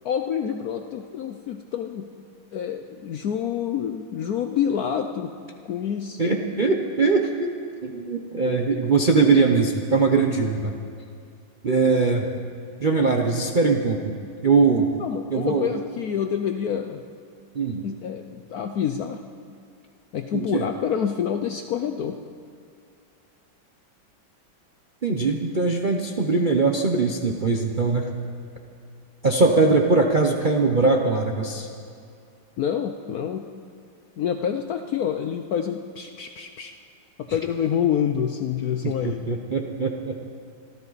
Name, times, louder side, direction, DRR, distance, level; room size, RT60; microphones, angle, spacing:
voice 1, 0.0-2.1 2.5-5.3 5.7-6.4 15.0-17.1 17.8-19.2 20.1-22.2 32.6-33.5 34.2-36.7 37.2-39.3, left 8 dB, 70° left, 6 dB, 0.9 m, -27 dB
voice 2, 6.2-10.7 11.6-12.3 12.8-14.9 15.3-15.7 17.5-17.9 20.3-20.7 25.0-28.1 29.2-31.7 38.8-40.2, right 4 dB, 45° right, 2 dB, 0.6 m, -21 dB
26.5 x 13.5 x 4.1 m, 2.4 s
omnidirectional pair, 2.2 m